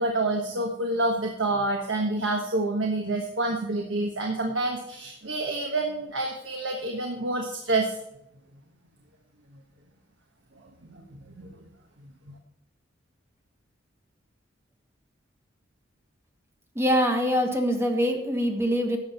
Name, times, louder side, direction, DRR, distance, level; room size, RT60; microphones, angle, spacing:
voice 1, 0.0-8.0 10.9-11.5 12.0-12.4, right 2 dB, 90° right, 2 dB, 1.3 m, -28 dB
voice 2, 16.7-19.0, equal, 15° right, 4 dB, 1.3 m, -24 dB
12.0 x 7.2 x 4.3 m, 0.77 s
head